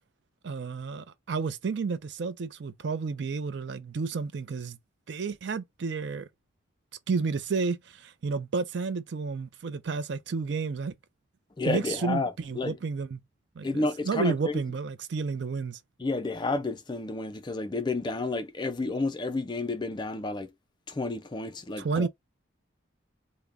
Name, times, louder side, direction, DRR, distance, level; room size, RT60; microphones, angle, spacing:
voice 1, 0.4-4.8 5.1-6.3 7.1-10.9 11.7-13.2 13.6-15.8 21.8-22.1, right 4 dB, 60° right, 0.4 m, -31 dB
voice 2, 11.6-12.8 13.6-14.6 16.0-20.5 20.9-22.1, left 3 dB, 25° left, 0.4 m, -31 dB
3.4 x 2.1 x 3.4 m
head